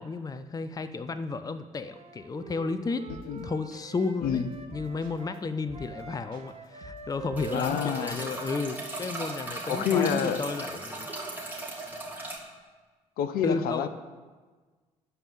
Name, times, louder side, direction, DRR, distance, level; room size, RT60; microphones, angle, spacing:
voice 1, 0.0-3.1 3.4-4.4 4.7-11.1 13.4-13.9, left 4 dB, 20° left, 11 dB, 0.6 m, -33 dB
Wind instrument woodwind instrument, 1.8-9.8, right 5 dB, 35° right, 1.4 m, -45 dB
sound 1, 3.1-3.4 3.7-5.4 5.7-6.0 6.3-8.1, right 1 dB, 55° right, 2.1 m, -49 dB
sound 2, 7.4-12.4, right 2 dB, 10° right, 3.4 m, -37 dB
voice 2, 7.5-8.2 9.7-10.4 13.2-13.9, left 8 dB, 60° left, 11 dB, 0.8 m, -28 dB
12.5 x 5.4 x 9.0 m, 1.4 s
figure-of-eight pair, 45°, 18 cm